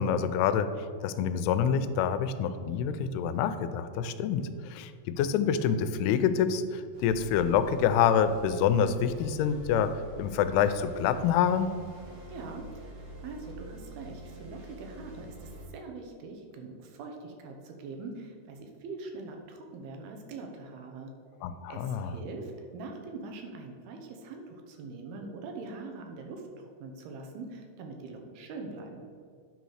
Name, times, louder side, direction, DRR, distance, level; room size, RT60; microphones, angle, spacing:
voice 1, 0.0-9.9 10.2-11.7 21.4-22.2, left 8 dB, 90° left, 11 dB, 2.6 m, -27 dB
sound 1, 6.9-15.7, right 1 dB, 55° right, 3.3 m, -46 dB
voice 2, 12.3-21.1 21.7-29.1, right 3 dB, 80° right, 3 dB, 2.9 m, -43 dB
9.5 x 4.0 x 6.3 m, 2.2 s
omnidirectional pair, 4.5 m